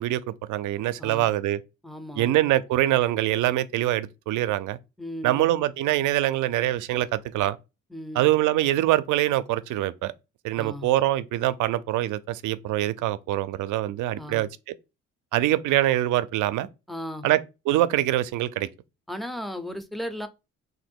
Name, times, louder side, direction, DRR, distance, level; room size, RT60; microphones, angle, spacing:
voice 1, 0.0-1.6 2.2-4.8 5.2-7.6 8.1-10.1 10.4-14.7 15.3-16.7 17.2-17.4 17.7-18.7, right 14 dB, 80° right, 0.5 m, -24 dB
voice 2, 1.0-1.3 1.8-2.3 5.0-5.5 7.9-8.3 10.5-10.9 14.2-14.4 16.9-17.3 19.1-20.3, equal, ahead, 0.5 m, -36 dB
3.0 x 2.6 x 4.3 m
cardioid pair, 90°, 30 cm